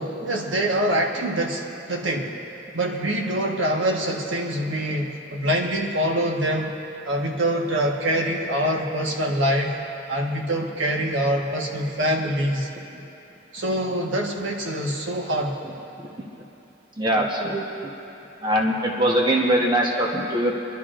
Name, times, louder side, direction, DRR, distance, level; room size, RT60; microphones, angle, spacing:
voice 1, 0.0-2.3 2.7-6.8 7.0-9.8 10.1-12.7 13.5-15.6, right 1 dB, 75° right, 0 dB, 1.3 m, -25 dB
voice 2, 17.0-17.9 18.4-20.5, right 1 dB, 25° right, -1 dB, 1.0 m, -22 dB
26.0 x 12.0 x 2.5 m, 3.0 s
head